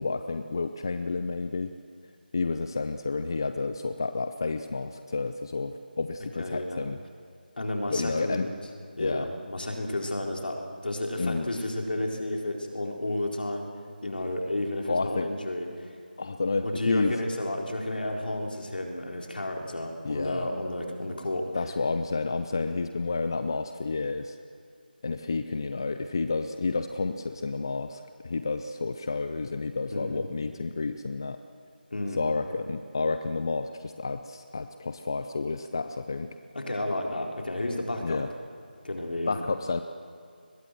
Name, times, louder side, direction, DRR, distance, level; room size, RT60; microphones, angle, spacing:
voice 1, 0.0-1.7 2.3-7.0 7.9-8.5 9.0-9.3 11.2-11.5 14.9-15.3 16.2-17.2 20.0-20.5 21.5-24.4 25.0-31.4 32.2-36.3 38.0-38.3 39.3-39.8, left 3 dB, 25° left, 9 dB, 0.5 m, -30 dB
voice 2, 6.4-6.8 7.6-8.5 9.0-13.7 14.0-15.9 16.6-21.6 29.9-30.2 31.9-32.2 36.5-38.2 38.8-39.3, left 1 dB, 65° left, 1 dB, 4.1 m, -32 dB
23.0 x 21.0 x 7.7 m, 2.2 s
figure-of-eight pair, 175°, 5 cm